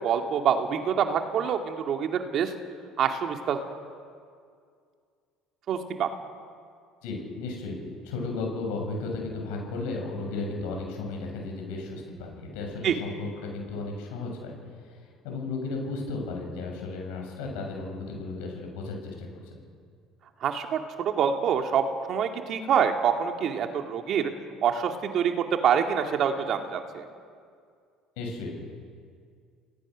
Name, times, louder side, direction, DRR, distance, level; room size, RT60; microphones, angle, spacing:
voice 1, 0.0-2.5 3.0-3.6 5.7-6.1 12.8-12.9 20.4-20.8 21.1-24.3 24.6-27.1, right 7 dB, 55° right, 4 dB, 2.3 m, -26 dB
voice 2, 7.0-7.8 8.0-19.5 28.2-28.7, left 3 dB, 75° left, 1 dB, 7.1 m, -34 dB
29.0 x 18.5 x 6.4 m, 2.2 s
hypercardioid pair, 70°, 0 cm